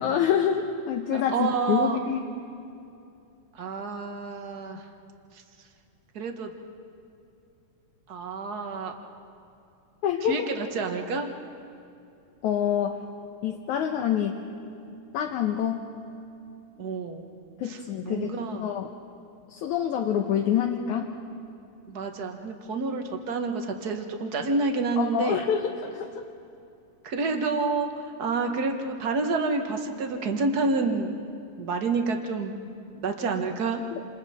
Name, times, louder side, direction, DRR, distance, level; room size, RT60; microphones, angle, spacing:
voice 1, 0.0-2.3 10.0-10.5 12.4-13.0 13.4-14.4 15.1-15.9 17.6-18.9 19.5-21.1 25.0-26.1 33.9-34.0, left 9 dB, 70° left, 2 dB, 2.4 m, -26 dB
voice 2, 1.1-2.0 3.5-4.8 6.1-6.5 8.1-8.9 10.2-11.3 16.8-17.2 17.6-18.7 21.9-25.4 27.0-31.2 31.6-32.5 32.9-33.8, right 4 dB, 55° right, 4 dB, 1.1 m, -28 dB
28.5 x 28.0 x 4.3 m, 2.7 s
omnidirectional pair, 3.8 m